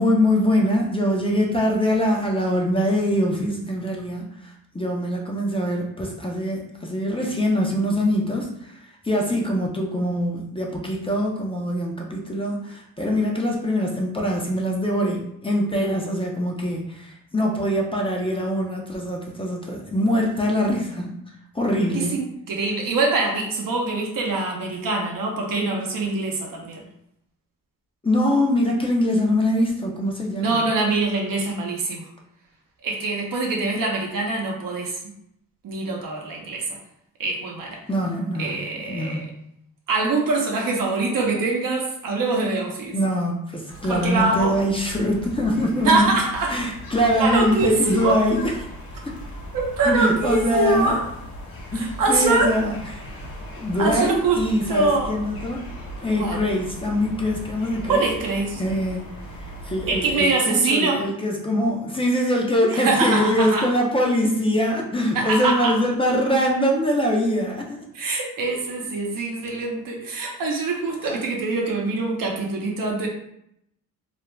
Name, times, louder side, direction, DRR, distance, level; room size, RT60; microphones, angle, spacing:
voice 1, 0.0-8.7 9.0-21.1 21.5-22.2 28.0-30.5 37.9-38.6 38.9-39.2 42.9-46.1 46.5-48.4 49.9-51.0 51.7-52.7 53.6-55.6 56.0-58.0 58.6-59.0 59.4-67.8 71.0-71.2, equal, 15° left, -1 dB, 0.5 m, -23 dB
voice 2, 21.9-26.8 30.4-32.1 32.8-35.1 35.6-36.7 37.2-37.8 38.4-39.3 39.9-43.0 43.8-44.6 45.8-46.6 47.2-48.2 49.5-51.1 51.7-52.5 53.8-55.2 56.1-56.4 57.9-58.6 59.9-61.0 62.8-63.7 65.1-65.8 67.9-73.1, right 3 dB, 70° right, 0 dB, 0.8 m, -24 dB
sound 1, 43.7-60.2, equal, 85° left, 0.7 m, -38 dB
2.5 x 2.1 x 3.1 m, 0.75 s
cardioid pair, 75°, 35 cm